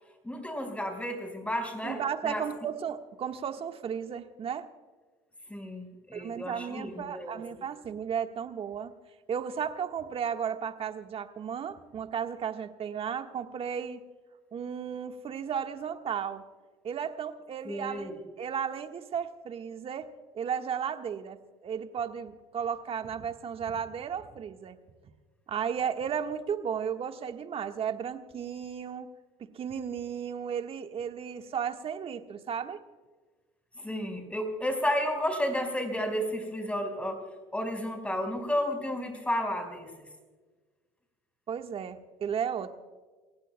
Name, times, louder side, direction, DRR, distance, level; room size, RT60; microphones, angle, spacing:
voice 1, 0.2-2.4 5.5-7.4 17.6-18.2 33.8-37.2 37.5-40.1, equal, 10° left, 4 dB, 4.9 m, -32 dB
voice 2, 1.8-4.7 6.1-8.9 9.3-14.0 14.5-16.4 16.8-21.4 21.6-24.8 25.5-29.1 29.4-32.8 41.5-42.8, right 7 dB, 45° right, 7 dB, 1.4 m, -34 dB
29.0 x 16.0 x 2.2 m, 1.4 s
hypercardioid pair, 70°, 14 cm